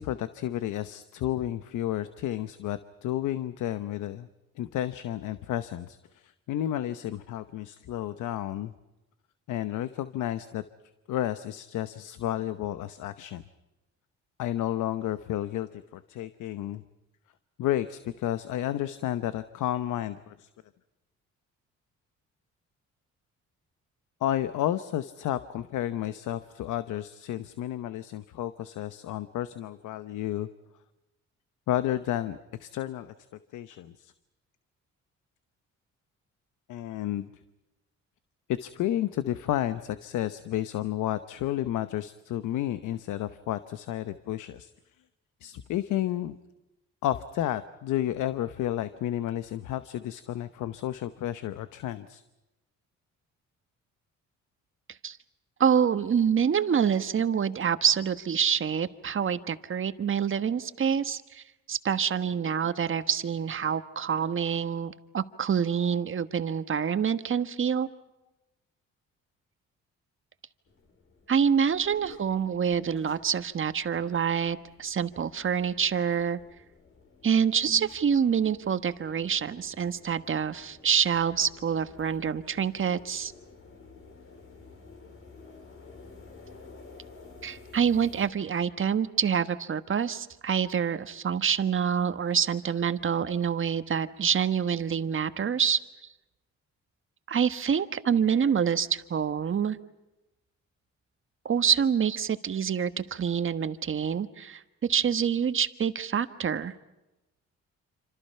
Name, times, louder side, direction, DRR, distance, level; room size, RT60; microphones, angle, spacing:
voice 1, 0.0-4.3 4.6-8.7 9.5-10.6 11.1-13.4 14.4-16.8 17.6-20.5 24.2-30.5 31.7-33.1 33.5-34.1 36.7-37.3 38.6-44.7 45.4-46.4 47.0-52.2, left 12 dB, 85° left, 12 dB, 1.0 m, -31 dB
voice 2, 55.6-67.9 71.3-76.4 77.2-83.3 87.4-95.8 97.3-99.8 101.4-106.7, right 7 dB, 40° right, 11 dB, 1.4 m, -26 dB
sound 1, 70.7-88.3, left 4 dB, 45° left, 4.4 m, -53 dB
27.5 x 26.5 x 5.7 m, 0.99 s
cardioid pair, 90°, 30 cm